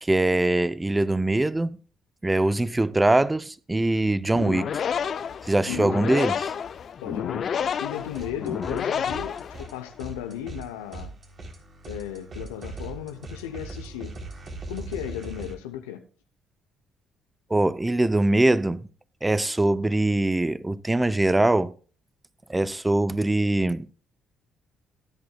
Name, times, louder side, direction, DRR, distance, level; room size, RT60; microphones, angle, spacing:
voice 1, 0.0-1.8 2.2-4.7 5.4-6.5 17.5-18.8 19.2-21.7 22.5-23.9, right 2 dB, 15° right, 0.6 m, -22 dB
sound 1, 4.3-10.0, left 7 dB, 55° left, 0.7 m, -30 dB
voice 2, 7.0-11.1 11.9-14.1 14.7-16.0, left 10 dB, 90° left, 0.8 m, -35 dB
sound 2, 8.1-8.8 9.1-15.5, right 2 dB, 50° right, 3.7 m, -40 dB
17.0 x 10.5 x 2.4 m
hypercardioid pair, 55°, 0 cm